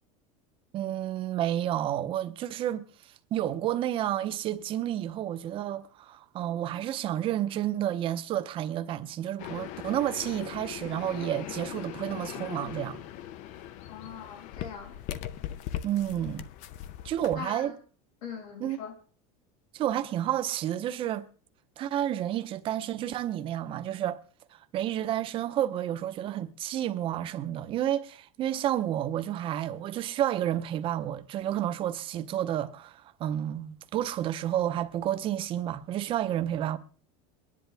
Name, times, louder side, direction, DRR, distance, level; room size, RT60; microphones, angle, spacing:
voice 1, 0.7-13.0 15.8-16.5 17.0-17.8 18.6-18.8 19.7-21.3 21.8-24.2 24.5-36.8, right 11 dB, 30° right, 0.7 m, -30 dB
sound 1, 9.4-17.4, left 12 dB, 45° left, 0.6 m, -40 dB
voice 2, 13.9-15.0 17.4-17.8 18.2-18.9, left 7 dB, 85° left, 4.0 m, -41 dB
24.0 x 10.5 x 3.4 m
cardioid pair, 170°, 18 cm